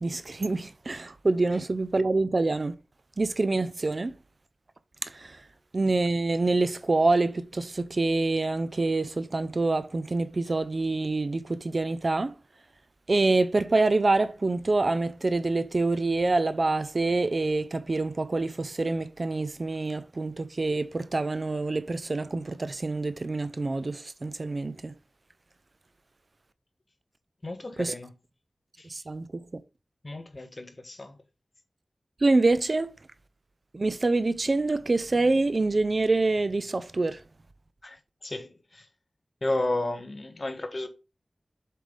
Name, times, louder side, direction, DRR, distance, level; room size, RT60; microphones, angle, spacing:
voice 1, 0.0-2.7 3.2-4.1 5.0-5.4 5.7-12.3 13.1-24.9 27.8-27.9 28.9-29.6 32.2-32.9 33.7-37.2, right 3 dB, 50° right, 0.6 m, -26 dB
voice 2, 27.4-28.1 28.8-28.9 30.0-31.1 37.8-38.0 38.2-38.8 39.4-40.9, left 2 dB, 45° left, 1.3 m, -32 dB
7.6 x 3.4 x 5.1 m
wide cardioid pair, 75°, 0 cm